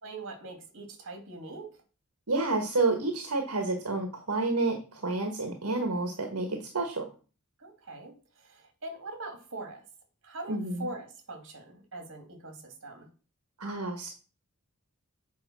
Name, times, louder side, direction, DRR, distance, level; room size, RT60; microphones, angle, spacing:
voice 1, 0.0-1.8 7.6-9.8 10.2-13.1, right 2 dB, 60° right, 5 dB, 2.8 m, -42 dB
voice 2, 2.3-7.1 10.5-10.8 13.6-14.1, right 3 dB, 80° right, 4 dB, 1.7 m, -29 dB
7.9 x 5.0 x 6.3 m, 0.35 s
head